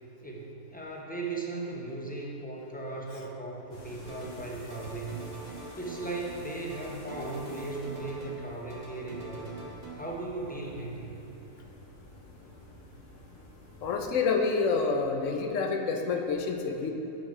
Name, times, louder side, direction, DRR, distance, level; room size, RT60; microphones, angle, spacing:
voice 1, 0.2-5.2 5.5-9.5 9.9-11.1, right 2 dB, 10° left, -3 dB, 0.7 m, -37 dB
sound 1, 3.7-14.2, left 1 dB, 45° left, 1.6 m, -50 dB
sound 2, 4.0-4.4 4.7-6.4 6.7-8.4 8.7-9.9, right 2 dB, 30° right, 1.2 m, -45 dB
voice 2, 13.8-16.9, left 4 dB, 65° left, 4 dB, 1.0 m, -28 dB
10.0 x 4.8 x 4.8 m, 3.0 s
omnidirectional pair, 1.5 m